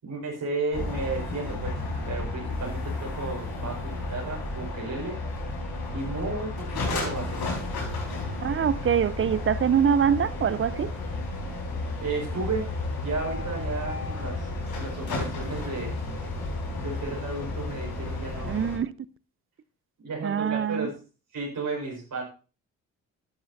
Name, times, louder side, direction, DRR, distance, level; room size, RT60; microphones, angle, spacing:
voice 1, 0.0-1.8 2.1-5.2 5.9-7.6 12.0-12.7 13.0-14.5 14.8-15.9 16.8-18.6 20.0-21.0 21.3-22.2, right 3 dB, 50° right, 5.4 m, -33 dB
sound 1, 0.7-18.8, left 2 dB, 60° left, 4.6 m, -32 dB
voice 2, 8.4-10.9 18.4-18.9 20.2-20.9, right 8 dB, 30° right, 0.6 m, -24 dB
13.0 x 12.5 x 2.8 m
hypercardioid pair, 40°, 42 cm